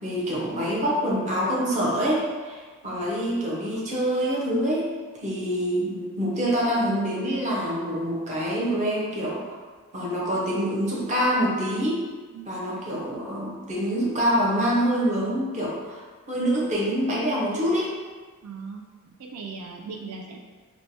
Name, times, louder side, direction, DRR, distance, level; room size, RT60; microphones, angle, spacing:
voice 1, 0.0-9.6 9.9-12.0 12.5-18.0, equal, 35° right, -5 dB, 0.7 m, -26 dB
voice 2, 2.9-3.3 6.4-6.5 12.3-12.7 18.4-18.9 19.2-20.4, right 4 dB, 85° right, 2 dB, 0.3 m, -39 dB
4.3 x 2.2 x 2.7 m, 1.4 s
head